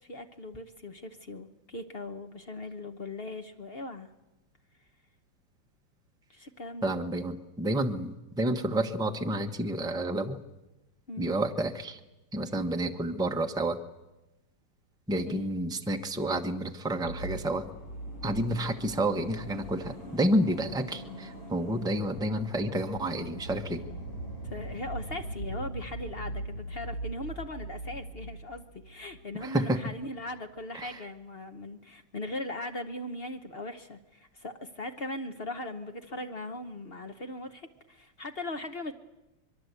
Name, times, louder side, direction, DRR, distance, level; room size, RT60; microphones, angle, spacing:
voice 1, 0.0-4.1 6.3-6.9 11.1-11.3 15.3-15.4 24.4-38.9, left 2 dB, 45° left, 6 dB, 0.7 m, -39 dB
voice 2, 6.8-10.4 11.2-12.0 12.3-13.8 15.1-17.6 18.2-23.8 29.4-29.8 30.7-31.0, right 1 dB, 5° right, 5 dB, 0.3 m, -30 dB
sound 1, 17.0-29.5 29.7-29.8, right 1 dB, 90° left, 7.6 m, -41 dB
25.0 x 22.5 x 8.2 m, 1.0 s
omnidirectional pair, 2.4 m